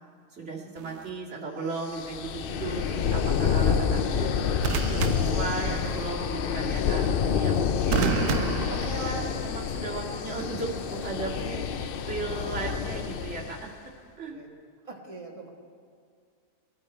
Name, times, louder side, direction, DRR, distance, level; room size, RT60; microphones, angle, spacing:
voice 1, 0.3-4.4 4.9-8.0 8.7-13.7 14.2-14.4, right 4 dB, 50° right, -3 dB, 2.5 m, -36 dB
sound 1, 0.8-1.1 4.6-6.1 7.9-9.6 10.8-11.1, right 8 dB, 90° right, 1.1 m, -31 dB
sound 2, 1.9-13.7, left 7 dB, 60° left, 0.5 m, -28 dB
voice 2, 14.8-15.5, right 3 dB, 20° right, -1 dB, 1.9 m, -43 dB
21.0 x 12.0 x 4.4 m, 2.2 s
omnidirectional pair, 1.6 m